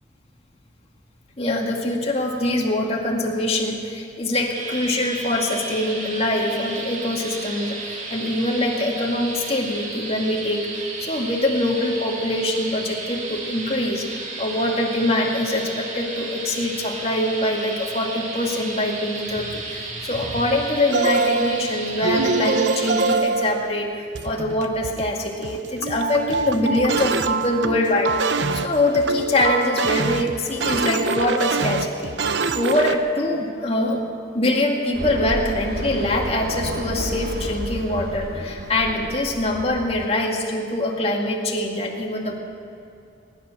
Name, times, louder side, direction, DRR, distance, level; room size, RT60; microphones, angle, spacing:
voice 1, 1.4-10.7 11.0-14.1 14.4-32.2 32.5-34.0 34.3-42.4, left 1 dB, 35° left, 0 dB, 2.2 m, -24 dB
sound 1, 4.5-23.2, right 3 dB, 40° right, 1.9 m, -33 dB
sound 2, 20.9-33.0, right 4 dB, 85° right, 0.8 m, -25 dB
sound 3, 34.9-40.1, right 1 dB, 60° right, 1.0 m, -31 dB
20.5 x 11.0 x 6.3 m, 2.5 s
head